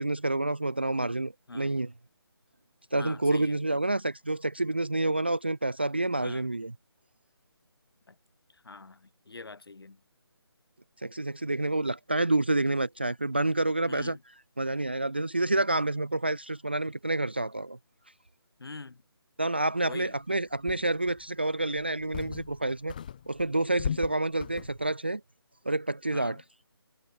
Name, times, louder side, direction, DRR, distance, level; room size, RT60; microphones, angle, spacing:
voice 1, 0.0-1.9 2.9-6.7 11.0-14.2 14.6-17.8 19.4-22.9 23.3-25.2 25.7-26.4, right 2 dB, 25° right, 0.4 m, -28 dB
voice 2, 3.0-3.6 6.2-6.5 8.1-8.2 8.5-10.0 13.9-14.2 18.6-19.0 19.8-20.2 26.1-26.4, left 3 dB, 60° left, 4.2 m, -44 dB
sound 1, 20.0-20.1 20.7-21.2 21.8-22.6 22.9-24.9, left 8 dB, 20° left, 2.5 m, -37 dB
hypercardioid pair, 180°, 14 cm